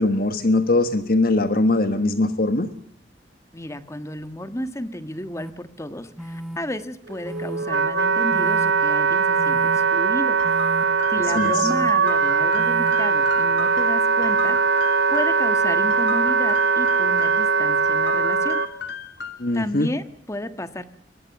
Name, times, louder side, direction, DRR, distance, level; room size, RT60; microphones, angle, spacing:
voice 1, 0.0-2.7 11.3-11.7 19.4-19.9, left 2 dB, 55° left, 10 dB, 1.4 m, -21 dB
voice 2, 3.5-10.4 11.1-18.6 19.5-20.8, left 1 dB, 15° left, 11 dB, 1.5 m, -32 dB
sound 1, 5.4-5.5 6.2-6.6 7.2-7.6 8.3-8.7 9.4-9.8 10.4-10.8 11.5-11.9 12.6-12.9, equal, ahead, 1.3 m, -35 dB
Wind instrument woodwind instrument, 7.1-18.7, right 5 dB, 85° right, 2.0 m, -20 dB
sound 2, 10.4-15.5 15.9-17.5 17.8-19.6, left 5 dB, 75° left, 2.2 m, -35 dB
23.0 x 20.5 x 7.0 m, 0.64 s
head